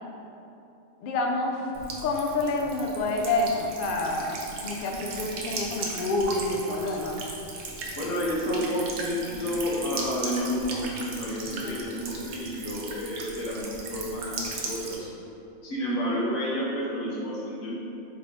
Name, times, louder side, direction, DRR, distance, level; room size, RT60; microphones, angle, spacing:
voice 1, 1.0-1.6 2.0-4.4 4.6-7.2 11.5-11.8, left 2 dB, 90° left, 1 dB, 0.4 m, -28 dB
Buzz / Water tap faucet / Trickle dribble, 1.7-15.0, right 2 dB, 70° right, 0.9 m, -37 dB
voice 2, 7.9-15.1 15.6-17.7, equal, 65° left, -6 dB, 1.3 m, -30 dB
3.4 x 3.3 x 3.9 m, 2.9 s
omnidirectional pair, 1.4 m